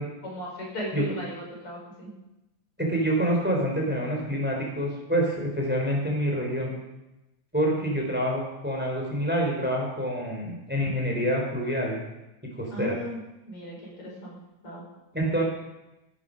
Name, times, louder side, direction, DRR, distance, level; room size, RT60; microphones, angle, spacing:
voice 1, 0.2-2.1 12.7-13.2 13.5-14.4 14.6-14.8, equal, 85° left, -4 dB, 6.3 m, -36 dB
voice 2, 2.8-6.8 7.5-12.0 12.6-13.0 15.1-15.4, equal, 5° right, -1 dB, 3.9 m, -27 dB
15.0 x 13.5 x 5.4 m, 0.95 s
omnidirectional pair, 2.4 m